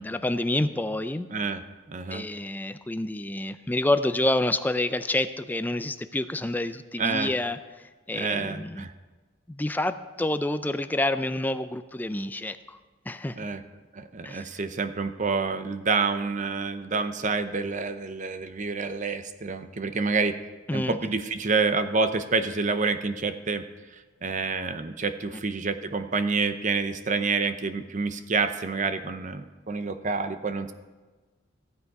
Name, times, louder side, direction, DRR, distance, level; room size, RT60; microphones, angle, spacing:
voice 1, 0.0-1.3 2.1-7.6 8.1-8.9 9.5-12.8 13.1-13.5 14.2-14.6 20.7-21.2 25.3-25.4, left 1 dB, 10° left, 10 dB, 0.4 m, -28 dB
voice 2, 1.3-1.6 1.9-2.2 7.0-7.3 8.1-8.9 13.4-13.6 13.9-20.3 20.7-23.6 24.2-30.7, right 4 dB, 40° right, 10 dB, 0.6 m, -28 dB
15.0 x 8.0 x 4.7 m, 1.3 s
head